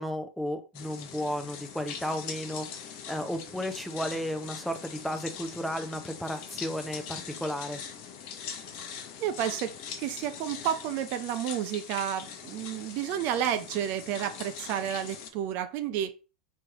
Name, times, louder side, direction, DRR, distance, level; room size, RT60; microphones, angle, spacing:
voice 1, 0.0-2.8 3.1-7.8, equal, ahead, 0.6 m, -33 dB
sound 1, 0.7-15.3, left 7 dB, 50° left, 0.8 m, -42 dB
voice 2, 8.8-16.1, right 10 dB, 45° right, 0.5 m, -31 dB
4.4 x 3.2 x 3.6 m
hypercardioid pair, 100°, 4 cm